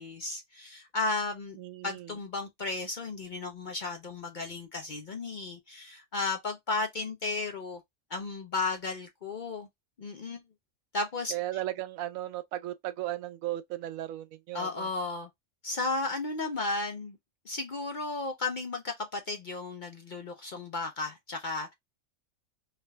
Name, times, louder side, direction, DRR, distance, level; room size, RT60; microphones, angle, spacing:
voice 1, 0.0-1.6 1.8-7.8 8.1-9.7 10.0-10.4 10.9-11.3 14.5-15.3 15.6-17.2 17.5-21.7, left 3 dB, 50° left, 0.6 m, -34 dB
voice 2, 1.6-2.1 11.3-14.9, right 14 dB, 85° right, 1.0 m, -36 dB
3.3 x 2.5 x 3.3 m
omnidirectional pair, 1.4 m